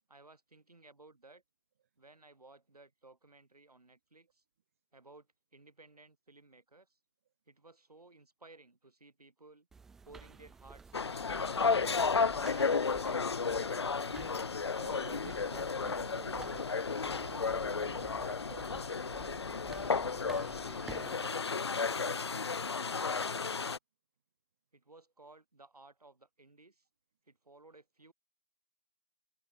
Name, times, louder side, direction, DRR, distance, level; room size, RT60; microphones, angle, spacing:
voice 1, 0.1-1.4 2.0-4.4 4.9-7.0 7.5-9.7 10.0-12.1 24.7-26.9 27.3-28.1, right 2 dB, 85° right, 7.4 m, -58 dB
sound 1, 9.7-21.3, right 4 dB, ahead, 1.2 m, -53 dB
sound 2, 10.9-23.8, left 5 dB, 45° left, 0.5 m, -33 dB
voice 2, 14.7-23.6, right 9 dB, 20° right, 2.0 m, -53 dB
figure-of-eight pair, 170°, 19 cm